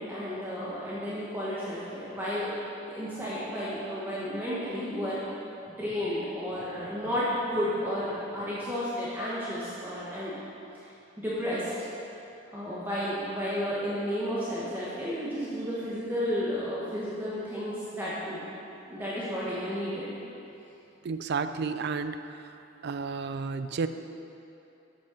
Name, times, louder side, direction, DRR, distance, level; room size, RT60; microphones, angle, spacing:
voice 1, 0.0-2.5 2.9-5.2 5.8-10.3 10.7-10.9 11.2-11.7 12.5-18.4 18.9-20.1, equal, 10° right, -9 dB, 1.2 m, -32 dB
voice 2, 21.0-22.4 22.8-23.9, right 5 dB, 60° right, 10 dB, 0.4 m, -31 dB
8.7 x 5.4 x 5.9 m, 2.8 s
head